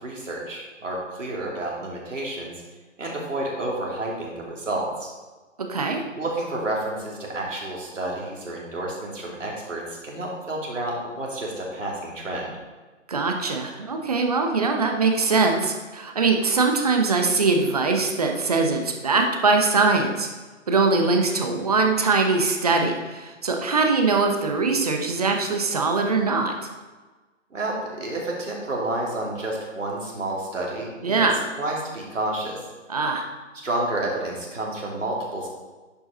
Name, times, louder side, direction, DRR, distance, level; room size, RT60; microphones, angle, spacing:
voice 1, 0.0-2.5 3.0-5.1 6.2-12.5 27.5-31.2 31.6-32.6 33.5-35.5, right 1 dB, 75° right, -3 dB, 2.9 m, -30 dB
voice 2, 5.7-6.0 13.1-20.3 20.7-26.5 31.0-31.5 32.9-33.2, right 4 dB, 30° right, 3 dB, 0.8 m, -22 dB
10.5 x 5.3 x 3.9 m, 1.3 s
figure-of-eight pair, 160°, 38 cm